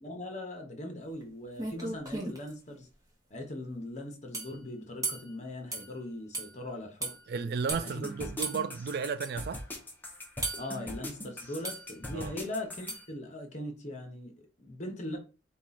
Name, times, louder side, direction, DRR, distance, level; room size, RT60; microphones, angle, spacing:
voice 1, 0.0-2.9 3.3-7.1 7.8-8.1 10.6-15.2, left 1 dB, 40° left, 0.9 m, -40 dB
sound 1, 1.2-1.3 1.6-2.5 4.3-4.6 5.0-5.3 5.7-5.9 6.3-6.5 7.0-7.2 7.7-7.9 8.4-8.6 9.2-9.3 10.4-10.7 11.6-11.9 12.9-13.1, right 2 dB, 20° right, 0.9 m, -35 dB
voice 2, 7.3-9.6 12.1-12.3, right 5 dB, 55° right, 0.3 m, -33 dB
sound 2, 7.7-12.9, left 1 dB, 10° left, 0.7 m, -41 dB
4.5 x 2.4 x 4.0 m
head